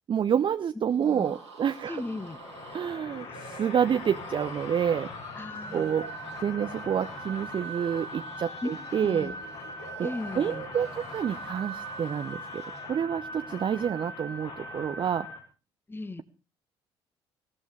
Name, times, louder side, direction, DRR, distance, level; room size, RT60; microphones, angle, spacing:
voice 1, 0.1-2.0 2.7-5.1 5.7-6.1 6.4-9.3 10.0-10.1 10.3-15.3, right 8 dB, 35° right, 11 dB, 0.6 m, -28 dB
voice 2, 0.9-1.3 1.9-2.4 2.7-2.8 3.3-3.4 5.3-6.0 8.6-8.7 9.0-9.4 10.0-10.6 15.9-16.2, left 2 dB, 15° left, 12 dB, 1.4 m, -37 dB
sound 1, 0.9-13.0, right 4 dB, 85° right, 2.9 m, -47 dB
sound 2, 1.7-15.4, left 1 dB, 55° left, 5.1 m, -41 dB
20.0 x 15.0 x 3.3 m, 0.32 s
figure-of-eight pair, 45°, 14 cm